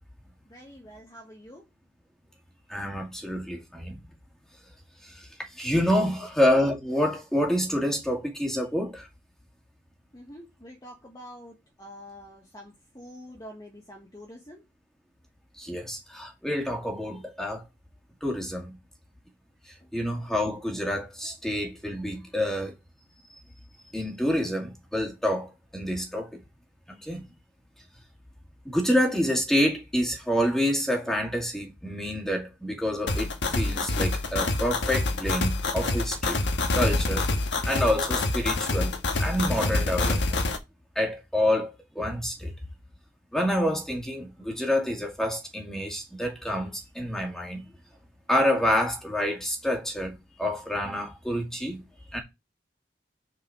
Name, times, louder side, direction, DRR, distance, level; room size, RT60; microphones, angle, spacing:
voice 1, 0.4-1.7 6.0-6.3 10.1-14.6 19.8-19.9, equal, 20° left, 1.3 m, -46 dB
voice 2, 2.7-4.0 5.6-9.1 15.6-17.6 18.2-18.8 19.9-22.7 23.9-26.4 27.0-27.2 28.7-36.4 36.7-37.3 37.6-38.9 39.2-40.4 41.0-41.7 42.0-42.5 43.3-47.6 48.3-51.8 52.1-52.2, equal, 5° left, 2.2 m, -27 dB
sound 1, 33.1-40.6, left 2 dB, 80° left, 1.3 m, -26 dB
6.7 x 4.7 x 4.7 m
head